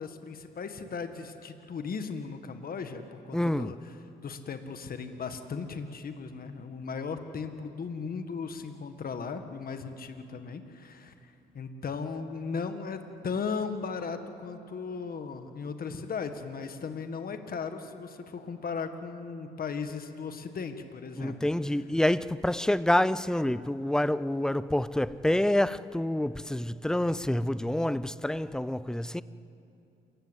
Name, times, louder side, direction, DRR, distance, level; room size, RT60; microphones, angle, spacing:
voice 1, 0.0-13.0 13.2-21.3, left 5 dB, 50° left, 1.7 m, -37 dB
voice 2, 3.3-3.7 21.2-29.2, left 1 dB, 5° left, 0.5 m, -27 dB
28.0 x 15.5 x 8.1 m
cardioid pair, 90°, 20 cm